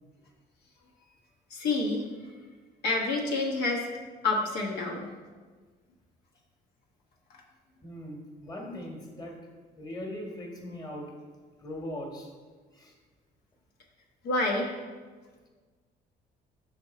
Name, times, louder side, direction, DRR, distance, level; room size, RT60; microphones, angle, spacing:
voice 1, 1.5-2.0 2.8-3.9 4.2-5.1 14.2-14.7, left 2 dB, 75° left, 0 dB, 1.2 m, -28 dB
voice 2, 7.8-9.4 9.7-11.1 11.6-12.3 12.7-12.9, left 1 dB, 25° left, 1 dB, 1.4 m, -40 dB
6.2 x 5.2 x 4.2 m, 1.4 s
cardioid pair, 110°, 17 cm